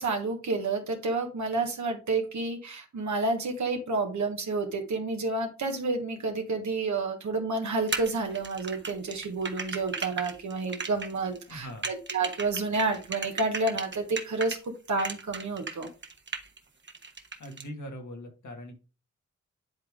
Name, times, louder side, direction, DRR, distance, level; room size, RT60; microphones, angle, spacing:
voice 1, 0.0-15.9, right 3 dB, 70° right, 3 dB, 1.4 m, -30 dB
sound 1, 7.9-14.6 15.0-16.6 16.9-17.6, right 4 dB, 40° right, 1.2 m, -36 dB
voice 2, 11.5-11.9 17.4-18.8, equal, 75° left, 3 dB, 2.0 m, -41 dB
10.5 x 3.5 x 3.6 m, 0.33 s
cardioid pair, 50°, 30 cm